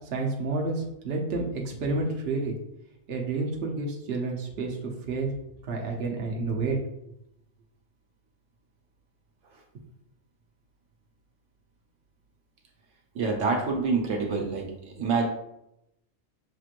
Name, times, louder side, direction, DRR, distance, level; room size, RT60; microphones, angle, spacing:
voice 1, 0.1-2.6 3.1-5.3 5.7-6.8, right 3 dB, 60° right, 0 dB, 1.0 m, -30 dB
voice 2, 13.1-15.3, right 4 dB, 80° right, 1 dB, 1.1 m, -27 dB
6.5 x 3.0 x 2.5 m, 0.81 s
omnidirectional pair, 1.3 m